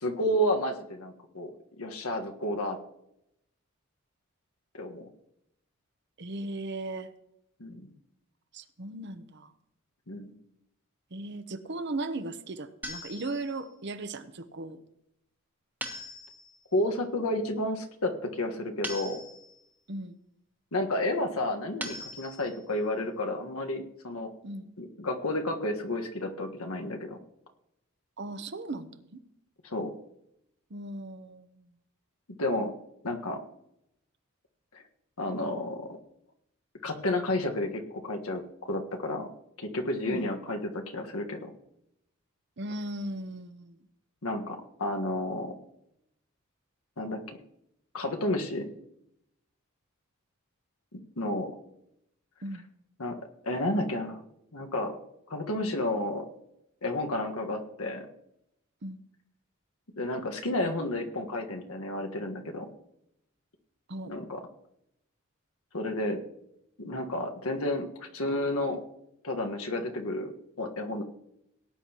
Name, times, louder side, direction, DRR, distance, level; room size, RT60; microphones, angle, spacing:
voice 1, 0.0-2.8 4.7-5.1 7.6-7.9 10.1-10.3 16.7-19.2 20.7-24.3 24.8-27.2 29.6-29.9 32.4-32.7 33.0-33.4 34.7-34.8 35.2-35.9 36.8-39.3 39.6-41.5 44.2-45.5 47.0-47.4 47.9-48.7 50.9-51.5 53.0-53.2 53.4-54.2 54.5-55.0 55.3-56.3 56.8-58.1 60.0-62.7 64.1-64.4 65.7-66.2 66.8-68.8 69.2-70.3 70.6-71.0, left 1 dB, 85° left, 4 dB, 1.5 m, -31 dB
voice 2, 6.2-7.1 8.5-9.5 11.1-14.8 19.9-20.2 24.4-24.8 28.2-29.2 30.7-31.7 40.0-40.3 42.6-43.8 52.4-52.6 58.8-59.0 63.9-64.1, right 2 dB, 55° right, 10 dB, 0.8 m, -37 dB
sound 1, 12.8-13.8 15.8-16.7 18.8-19.7 21.8-22.7, equal, 10° right, 1.2 m, -41 dB
18.0 x 9.8 x 2.9 m, 0.79 s
head